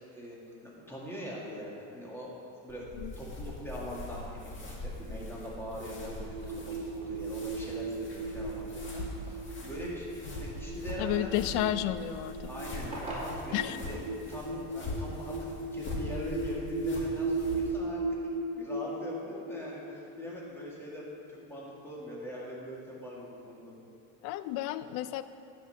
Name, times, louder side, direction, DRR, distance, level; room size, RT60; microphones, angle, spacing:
voice 1, 0.6-8.6 8.9-11.4 12.4-18.1 18.6-23.8, left 1 dB, 5° left, -5 dB, 1.9 m, -42 dB
sound 1, 2.7-17.7, left 1 dB, 30° left, 1.8 m, -42 dB
sound 2, 5.6-14.3, right 1 dB, 15° right, 2.5 m, -49 dB
sound 3, 5.8-22.1, right 3 dB, 65° right, 1.1 m, -37 dB
voice 2, 11.0-12.5 13.5-13.8 24.2-25.2, left 13 dB, 85° left, 13 dB, 0.5 m, -31 dB
9.6 x 5.4 x 6.5 m, 2.6 s
cardioid pair, 130°, 38 cm